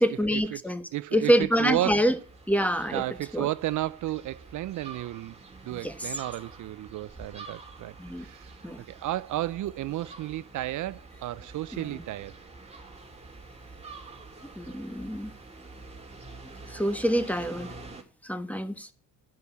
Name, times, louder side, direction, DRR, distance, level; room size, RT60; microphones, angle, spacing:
voice 1, 0.0-0.8 1.1-2.1 2.5-3.0 3.3-3.5 5.7-6.1 8.0-8.3 8.6-8.8 11.7-12.0 14.6-15.3 16.7-17.7 18.2-18.9, equal, 5° left, 1.3 m, -26 dB
voice 2, 0.9-2.0 2.9-5.4 5.6-8.6 8.9-12.4, right 15 dB, 65° right, 0.5 m, -32 dB
sound 1, 1.9-18.0, right 3 dB, 20° right, 2.3 m, -47 dB
12.5 x 5.4 x 8.3 m
cardioid pair, 90°, 33 cm